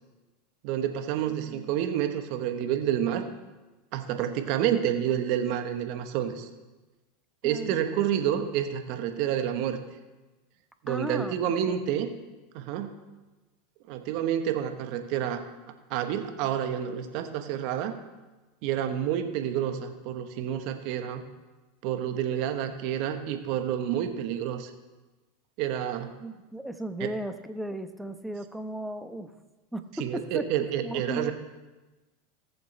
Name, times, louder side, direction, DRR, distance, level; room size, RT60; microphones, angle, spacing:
voice 1, 0.6-3.3 3.9-6.5 7.4-9.8 10.8-12.1 12.5-13.0 13.9-15.4 15.9-18.0 18.6-21.2 21.8-24.7 25.6-26.2 27.0-27.1 30.0-31.3, right 10 dB, 60° right, 7 dB, 1.2 m, -29 dB
voice 2, 7.4-7.8 10.9-11.4 11.7-11.9 26.2-29.3 29.7-30.5 30.8-31.3, right 1 dB, 5° right, 8 dB, 0.9 m, -36 dB
19.5 x 7.1 x 3.4 m, 1.2 s
hypercardioid pair, 95°, 0 cm